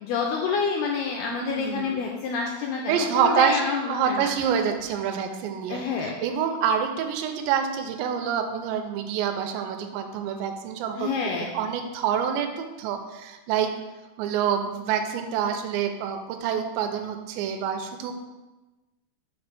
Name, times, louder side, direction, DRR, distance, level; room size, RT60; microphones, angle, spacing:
voice 1, 0.0-4.3 5.7-6.1 10.9-11.5, left 5 dB, 85° left, 0 dB, 2.2 m, -28 dB
voice 2, 1.3-2.0 2.9-3.6 3.9-11.1 11.4-13.7 14.2-18.2, right 8 dB, 85° right, 6 dB, 2.7 m, -27 dB
6.7 x 3.2 x 5.9 m, 1.1 s
omnidirectional pair, 5.0 m